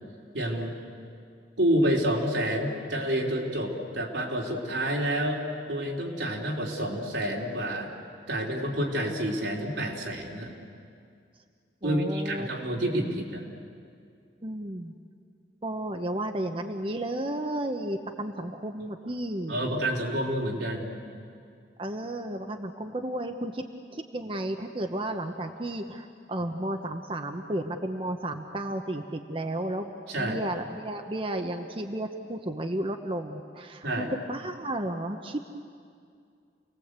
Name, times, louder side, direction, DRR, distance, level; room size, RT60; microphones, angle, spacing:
voice 1, 0.3-0.8 1.6-5.4 5.7-7.9 8.3-10.5 11.8-13.5 19.5-21.0 30.1-30.4 33.8-34.1, right 1 dB, 90° right, -1 dB, 3.8 m, -28 dB
voice 2, 11.8-12.5 14.4-14.9 15.6-19.7 21.8-23.6 23.9-35.4, right 1 dB, 30° right, 5 dB, 0.9 m, -33 dB
29.0 x 19.0 x 8.2 m, 2.3 s
head